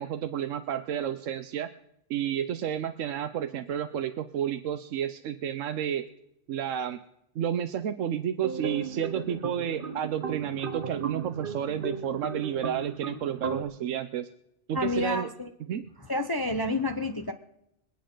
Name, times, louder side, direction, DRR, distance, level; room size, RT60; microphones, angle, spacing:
voice 1, 0.0-1.7 2.1-6.1 6.5-7.0 7.3-14.3 14.7-15.3 15.7-15.8, right 9 dB, 85° right, 9 dB, 1.1 m, -31 dB
sound 1, 8.4-13.6, right 5 dB, 45° right, 1.1 m, -36 dB
voice 2, 14.7-15.5 16.1-17.3, left 2 dB, 20° left, 6 dB, 0.7 m, -29 dB
26.0 x 8.8 x 3.8 m, 0.81 s
omnidirectional pair, 1.3 m